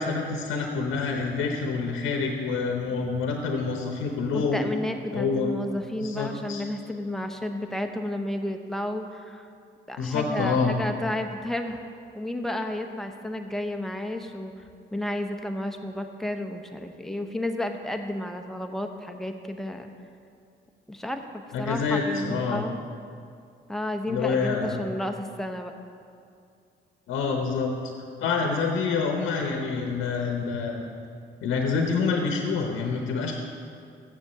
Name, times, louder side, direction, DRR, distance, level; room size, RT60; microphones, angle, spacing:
voice 1, 0.0-4.6 5.1-5.5 6.0-6.6 10.0-10.8 21.5-22.7 24.1-24.8 27.1-27.7 28.2-30.9 31.4-33.3, left 4 dB, 85° left, 2 dB, 0.9 m, -27 dB
voice 2, 4.3-9.5 9.9-11.8 12.1-14.6 14.9-19.9 20.9-22.8 23.7-25.7, left 1 dB, ahead, 4 dB, 0.8 m, -32 dB
7.4 x 7.1 x 6.7 m, 2.4 s
cardioid pair, 90°, 20 cm